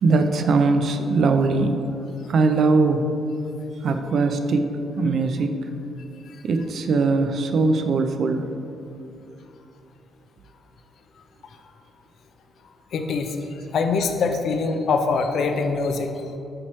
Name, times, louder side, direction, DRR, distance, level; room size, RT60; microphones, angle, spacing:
voice 1, 0.0-1.8 2.3-3.0 3.8-4.7 5.0-5.5 6.4-8.5, right 3 dB, 60° right, 7 dB, 0.5 m, -20 dB
voice 2, 12.9-13.4 13.7-16.1, left 4 dB, 65° left, 5 dB, 0.5 m, -23 dB
8.7 x 3.0 x 4.4 m, 2.7 s
cardioid pair, 90°, 0 cm